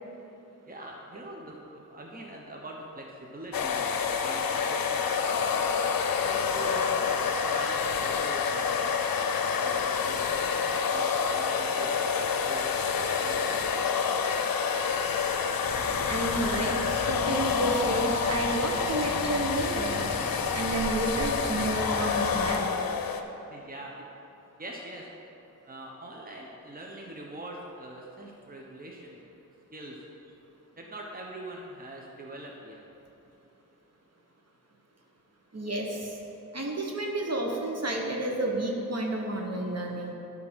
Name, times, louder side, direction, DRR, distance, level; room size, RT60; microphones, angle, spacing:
voice 1, 0.7-5.1 6.2-9.0 9.5-11.1 11.3-11.9 12.4-12.7 13.2-14.0 23.5-23.9 24.6-25.1 25.7-29.3 29.7-30.0 30.2-30.3 30.8-32.8, right 1 dB, 25° right, -1 dB, 1.1 m, -43 dB
sound 1, 3.5-23.2, left 6 dB, 90° left, 0.5 m, -28 dB
sound 2, 15.6-22.5, right 1 dB, 70° right, 1.6 m, -39 dB
voice 2, 16.1-20.0 20.5-22.7 35.5-36.2 36.5-40.1, right 1 dB, 45° right, 0 dB, 1.3 m, -30 dB
11.0 x 3.8 x 6.2 m, 2.9 s
cardioid pair, 50°, 34 cm